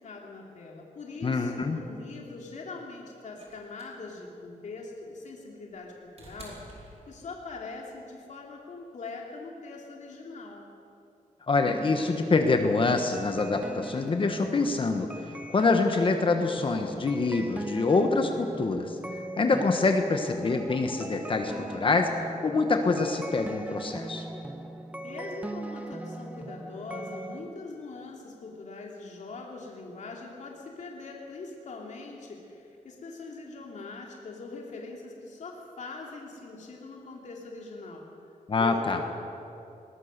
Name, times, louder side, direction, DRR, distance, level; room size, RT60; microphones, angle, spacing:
voice 1, 0.0-10.7 25.0-38.1 38.6-39.1, left 3 dB, 60° left, -1 dB, 2.8 m, -42 dB
voice 2, 1.2-1.8 11.5-19.0 19.4-24.2 38.5-39.0, left 3 dB, 40° left, 5 dB, 1.3 m, -25 dB
sound 1, 3.4-7.6 8.9-9.0, right 2 dB, 50° right, 4.3 m, -51 dB
sound 2, 11.7-27.4, right 2 dB, 10° right, 1.3 m, -40 dB
21.0 x 18.5 x 6.8 m, 2.7 s
wide cardioid pair, 135°, 14 cm